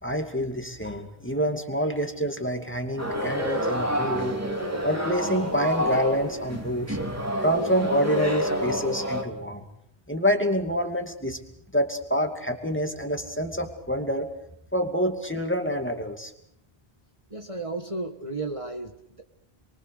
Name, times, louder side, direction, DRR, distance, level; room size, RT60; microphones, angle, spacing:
voice 1, 0.0-4.4 4.8-7.0 7.4-9.7 10.1-11.4 11.7-14.3 14.7-16.3, equal, 10° left, 4 dB, 2.5 m, -27 dB
sound 1, 3.0-9.2, equal, 15° right, 3.2 m, -28 dB
voice 2, 17.3-19.2, right 2 dB, 30° right, 4 dB, 1.7 m, -34 dB
28.5 x 23.5 x 6.7 m, 0.74 s
omnidirectional pair, 1.0 m